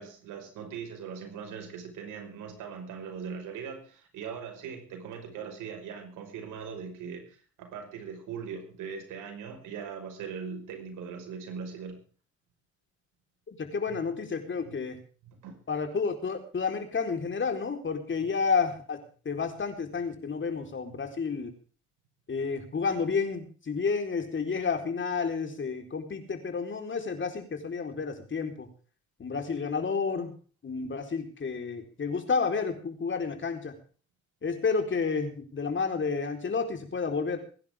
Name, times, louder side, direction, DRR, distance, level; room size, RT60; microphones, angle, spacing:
voice 1, 0.0-12.0 13.8-14.1 14.6-14.8 15.2-15.6 18.2-18.3 20.9-21.0, right 6 dB, 90° right, 5 dB, 5.5 m, -40 dB
voice 2, 13.5-15.0 15.7-19.0 19.2-21.5 22.3-28.7 29.2-30.3 30.6-33.7 34.4-37.4, left 5 dB, 40° left, 6 dB, 4.4 m, -30 dB
23.0 x 10.5 x 3.7 m, 0.41 s
cardioid pair, 90°, 30 cm